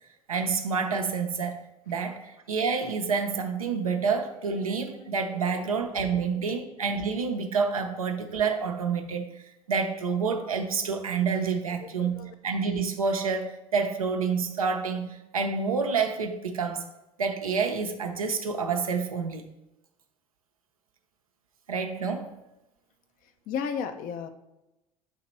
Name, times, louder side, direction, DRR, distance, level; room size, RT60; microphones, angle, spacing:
voice 1, 0.3-1.5 1.9-9.4 9.7-16.9 17.2-19.5 21.7-22.3, right 5 dB, 90° right, 4 dB, 0.6 m, -28 dB
voice 2, 6.1-6.5 11.8-12.3 23.5-24.3, left 7 dB, 50° left, 9 dB, 0.6 m, -35 dB
8.1 x 2.9 x 4.3 m, 0.98 s
hypercardioid pair, 65°, 18 cm